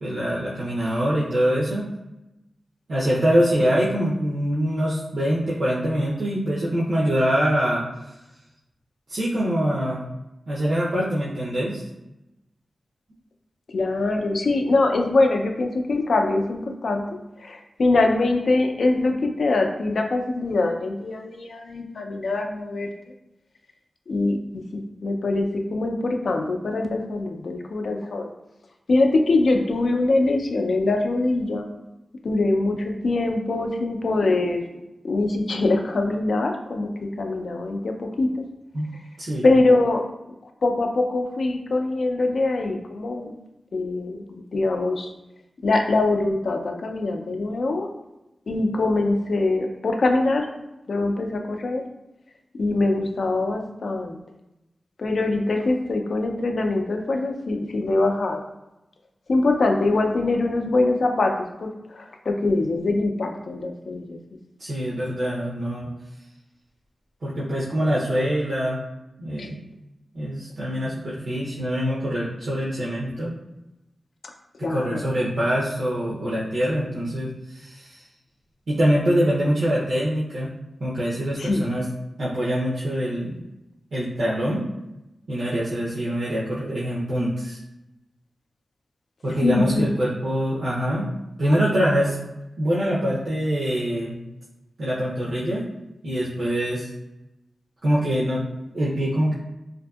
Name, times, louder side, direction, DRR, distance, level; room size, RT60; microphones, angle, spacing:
voice 1, 0.0-1.9 2.9-7.8 9.1-10.0 10.5-11.8 38.7-38.9 39.2-39.4 64.6-65.9 67.2-68.8 69.2-69.6 70.1-73.3 74.6-78.0 78.7-80.5 80.8-81.8 82.2-83.4 83.9-84.6 85.3-87.6 89.2-91.1 91.4-92.2 92.6-94.1 94.8-95.6 96.0-96.9 97.8-98.4 98.7-99.3, equal, 75° right, -7 dB, 0.6 m, -24 dB
voice 2, 13.7-17.0 17.4-22.9 24.1-24.6 25.0-28.3 28.9-31.7 32.2-34.6 35.0-38.3 39.4-40.0 40.6-43.3 43.7-44.2 44.5-45.1 45.6-47.9 48.5-50.5 50.9-51.8 52.5-54.2 55.0-58.4 59.3-61.3 61.6-64.2 69.4-69.5 74.6-75.0 81.4-81.7 89.4-89.9, left 2 dB, 70° left, 3 dB, 0.3 m, -23 dB
2.6 x 2.5 x 2.3 m, 0.93 s
wide cardioid pair, 80°, 0 cm